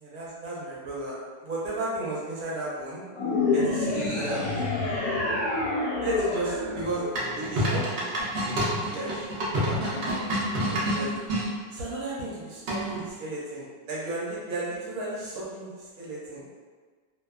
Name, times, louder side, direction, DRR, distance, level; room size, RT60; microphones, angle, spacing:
voice 1, 0.0-3.0 3.5-4.7 6.0-7.1 7.4-8.2 8.8-9.3 9.5-11.1 11.7-15.7 16.0-16.4, right 2 dB, 65° right, -6 dB, 1.0 m, -34 dB
sound 1, 3.1-7.7, left 3 dB, 80° left, 1.3 m, -28 dB
sound 2, 7.2-11.5 12.7-13.1, equal, 85° right, 0.5 m, -28 dB
2.8 x 2.2 x 2.3 m, 1.5 s
omnidirectional pair, 1.9 m